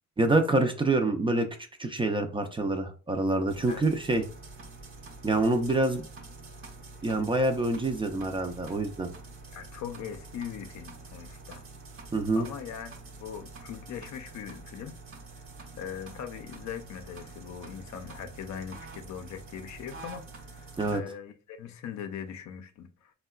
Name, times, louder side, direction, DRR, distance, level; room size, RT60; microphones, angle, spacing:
voice 1, 0.2-1.5 1.8-4.2 5.2-6.1 7.0-9.1 12.1-12.5 20.8-21.0, right 2 dB, 15° right, 0.4 m, -26 dB
sound 1, 3.5-21.0, right 3 dB, 45° right, 0.7 m, -46 dB
voice 2, 9.5-11.6 12.3-12.9 13.2-15.0 15.8-23.1, left 8 dB, 65° left, 0.5 m, -40 dB
3.5 x 2.2 x 2.3 m
cardioid pair, 90°, 30 cm